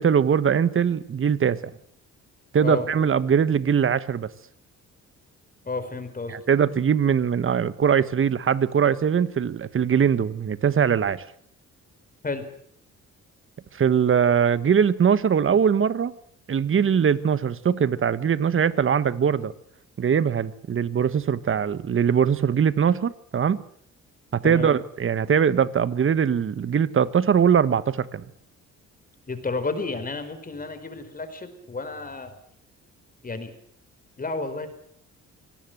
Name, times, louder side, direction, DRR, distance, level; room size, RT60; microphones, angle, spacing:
voice 1, 0.0-1.6 2.5-4.3 6.3-11.2 13.7-16.1 16.5-19.5 20.0-23.6 24.3-28.2, right 7 dB, 45° right, 16 dB, 1.4 m, -21 dB
voice 2, 5.7-6.3 12.2-12.4 24.4-24.7 29.3-32.3 33.2-33.5 34.2-34.7, left 3 dB, 30° left, 9 dB, 4.6 m, -31 dB
25.0 x 18.0 x 7.9 m, 0.64 s
cardioid pair, 90°, 30 cm